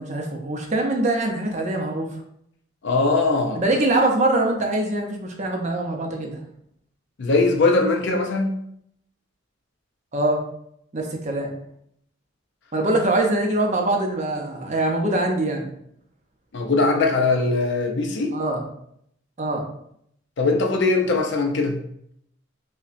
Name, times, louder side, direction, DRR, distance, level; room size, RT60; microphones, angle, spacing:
voice 1, 0.0-2.2 3.5-6.4 10.1-10.4 10.9-11.5 12.7-15.7 18.3-18.6 19.4-19.7, right 2 dB, 35° right, 2 dB, 0.5 m, -23 dB
voice 2, 2.8-3.6 7.2-8.5 16.5-18.3 20.4-21.8, left 3 dB, 60° left, 3 dB, 0.5 m, -20 dB
5.4 x 2.1 x 2.5 m, 0.72 s
head